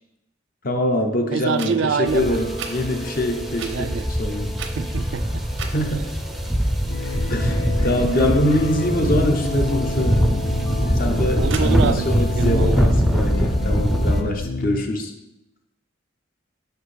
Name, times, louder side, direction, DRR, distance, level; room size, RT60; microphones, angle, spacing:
voice 1, 0.6-4.6 5.7-6.1 7.3-10.2 10.9-15.1, left 1 dB, 50° left, 4 dB, 0.8 m, -24 dB
voice 2, 1.3-2.4 3.6-4.1 4.8-5.4 11.4-12.1 12.3-12.9, right 6 dB, 65° right, 12 dB, 0.3 m, -25 dB
sound 1, 1.5-1.7 2.6-2.7 3.5-3.7 4.5-5.1 5.5-5.8 11.4-12.5, right 6 dB, 85° right, 0.7 m, -35 dB
sound 2, 2.1-14.2, equal, ahead, 0.5 m, -22 dB
sound 3, 6.9-14.8, left 3 dB, 65° left, 0.5 m, -30 dB
5.6 x 4.7 x 4.9 m, 0.88 s
head